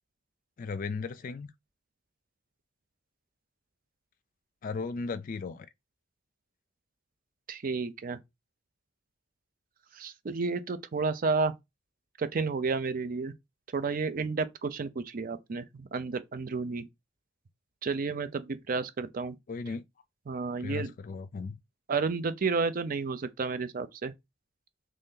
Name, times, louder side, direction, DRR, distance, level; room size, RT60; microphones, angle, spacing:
voice 1, 0.6-1.5 4.6-5.7 19.5-19.8 20.6-21.6, left 4 dB, 45° left, 0.3 m, -36 dB
voice 2, 7.5-8.2 10.0-11.5 12.2-13.3 13.7-16.9 17.8-19.4 20.3-20.9 21.9-24.1, right 4 dB, 45° right, 0.5 m, -31 dB
3.1 x 2.7 x 3.7 m
head